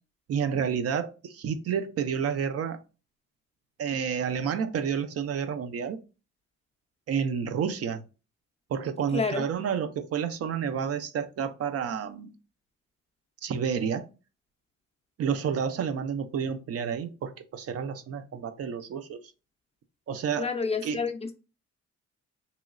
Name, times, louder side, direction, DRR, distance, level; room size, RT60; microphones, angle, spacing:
voice 1, 0.3-2.8 3.8-6.0 7.1-8.0 8.7-12.3 13.4-14.1 15.2-19.2 20.1-20.5 20.8-21.0, right 7 dB, 55° right, 0.4 m, -30 dB
voice 2, 9.1-9.4 20.4-21.3, left 5 dB, 20° left, 0.4 m, -29 dB
3.0 x 2.9 x 2.4 m
cardioid pair, 90°, 30 cm